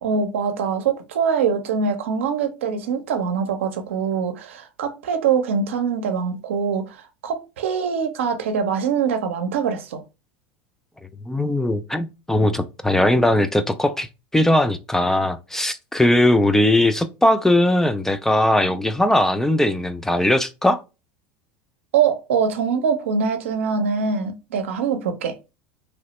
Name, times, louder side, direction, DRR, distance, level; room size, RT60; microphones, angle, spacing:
voice 1, 0.0-10.0 21.9-25.3, right 6 dB, 85° right, 0.6 m, -23 dB
voice 2, 11.3-20.8, left 1 dB, 5° left, 0.3 m, -19 dB
3.0 x 2.0 x 2.9 m
hypercardioid pair, 95°, 7 cm